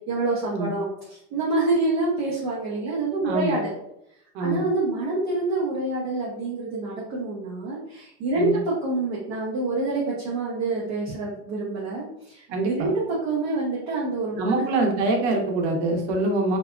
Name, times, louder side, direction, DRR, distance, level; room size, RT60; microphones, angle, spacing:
voice 1, 0.1-3.7 4.4-14.7, right 2 dB, 30° right, -6 dB, 0.4 m, -27 dB
voice 2, 3.2-3.6 4.3-4.7 8.4-8.5 12.5-12.9 14.3-16.6, right 2 dB, 60° right, 2 dB, 0.7 m, -24 dB
2.6 x 2.4 x 2.3 m, 0.78 s
supercardioid pair, 175°, 39 cm